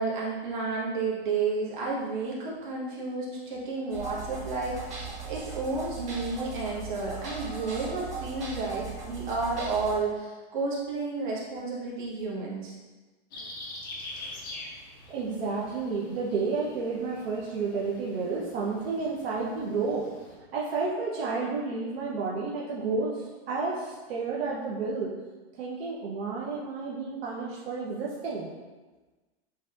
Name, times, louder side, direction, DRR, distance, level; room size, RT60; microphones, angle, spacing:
voice 1, 0.0-12.7, right 3 dB, 50° right, -4 dB, 1.3 m, -31 dB
sound 1, 3.9-10.0, right 5 dB, 20° right, 0.8 m, -38 dB
sound 2, 13.3-20.3, left 2 dB, 20° left, 0.4 m, -45 dB
voice 2, 15.1-20.0 20.5-25.1 25.6-28.5, right 4 dB, 70° right, -5 dB, 0.9 m, -31 dB
7.3 x 2.8 x 2.4 m, 1.2 s
supercardioid pair, 180°, 31 cm